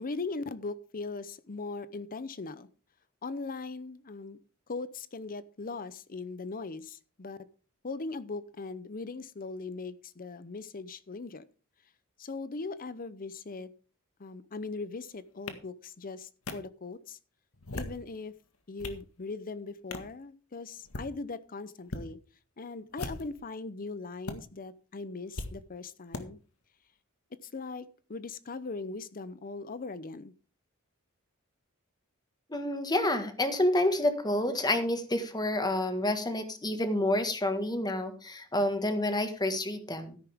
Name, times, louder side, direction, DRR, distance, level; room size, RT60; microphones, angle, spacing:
voice 1, 0.0-2.7 3.2-4.4 4.7-7.4 7.8-11.4 12.2-13.7 14.2-17.2 17.7-18.3 18.7-22.2 22.6-26.4 27.3-30.3, left 3 dB, 40° left, 15 dB, 0.7 m, -39 dB
sound 1, 15.5-15.6 16.5-16.6 17.5-18.0 18.5-19.0 19.9-20.1 20.8-21.1 21.8-22.1 22.9-23.4 24.3-24.4 25.4-25.5 26.1-26.2, left 2 dB, 80° left, 1.8 m, -38 dB
voice 2, 32.5-40.2, left 1 dB, 20° left, 8 dB, 1.7 m, -29 dB
13.5 x 11.0 x 3.6 m, 0.36 s
head